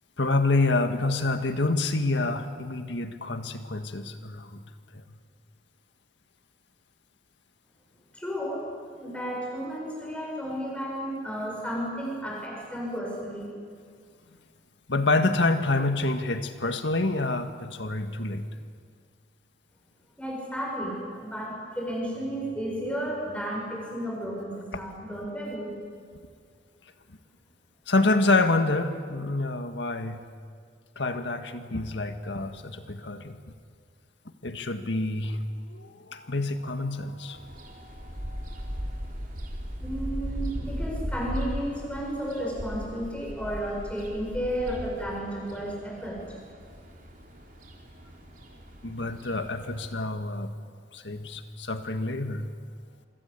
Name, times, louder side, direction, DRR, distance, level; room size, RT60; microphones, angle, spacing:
voice 1, 0.2-4.6 4.9-5.0 14.9-18.5 27.9-30.2 31.0-33.4 34.4-38.5 48.8-50.5 50.9-52.5, left 2 dB, 80° left, 7 dB, 1.8 m, -27 dB
voice 2, 8.1-8.7 9.0-13.5 20.2-25.7 39.8-46.2, equal, 5° left, -2 dB, 7.5 m, -33 dB
sound 1, 37.3-49.9, equal, 50° right, 4.0 m, -37 dB
27.5 x 24.5 x 8.4 m, 2.1 s
head